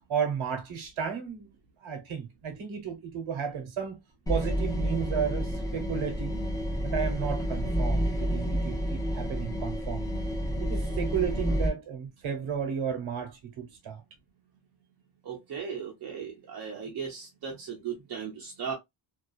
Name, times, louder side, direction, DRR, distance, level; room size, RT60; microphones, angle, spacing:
voice 1, 0.1-1.5 1.8-4.0 4.3-6.4 6.8-10.0 10.6-14.0, right 7 dB, 85° right, 1.0 m, -33 dB
sound 1, 4.3-11.7, equal, 10° left, 0.5 m, -29 dB
voice 2, 15.2-18.7, right 7 dB, 55° right, 0.6 m, -37 dB
2.6 x 2.3 x 2.3 m
wide cardioid pair, 160°, 47 cm